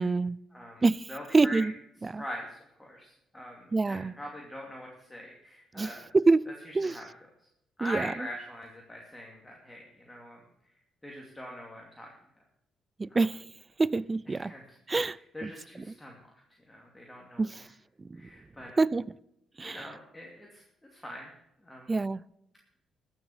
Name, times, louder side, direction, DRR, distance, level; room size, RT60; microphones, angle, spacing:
voice 1, 0.0-0.4 0.8-1.0 1.3-1.7 2.0-2.2 3.7-4.1 5.8-6.4 6.7-7.0 7.8-8.1 13.0-13.4 13.8-14.5 14.9-15.2 15.4-15.5 17.4-17.6 18.8-19.1 19.6-19.8 21.9-22.2, right 3 dB, 25° right, 0.4 m, -25 dB
voice 2, 0.5-1.7 2.2-6.1 6.6-7.1 7.8-10.4 11.0-12.1 14.3-14.6 15.1-16.2 16.7-17.7 18.1-18.8 19.6-20.6 20.9-21.3 21.6-21.9, equal, 10° left, 2.6 m, -43 dB
14.0 x 7.2 x 7.3 m
cardioid pair, 90°, 0 cm